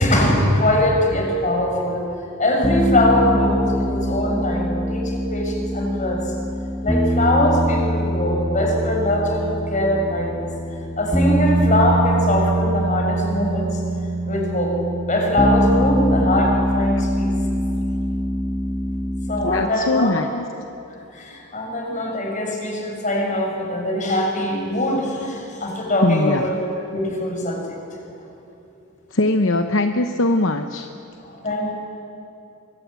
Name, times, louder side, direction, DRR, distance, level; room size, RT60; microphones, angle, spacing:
voice 1, 0.0-2.0 2.4-6.3 6.8-10.5 11.0-13.8 14.3-14.7 15.1-17.3 19.3-20.1 21.1-26.5 26.9-27.8 31.2-31.7, left 1 dB, 35° left, 1 dB, 5.7 m, -22 dB
sound 1, 2.6-19.6, equal, ahead, 1.5 m, -23 dB
voice 2, 19.4-20.4 26.0-26.5 29.1-30.9, left 2 dB, 65° left, 6 dB, 0.9 m, -21 dB
24.0 x 22.5 x 8.4 m, 2.9 s
head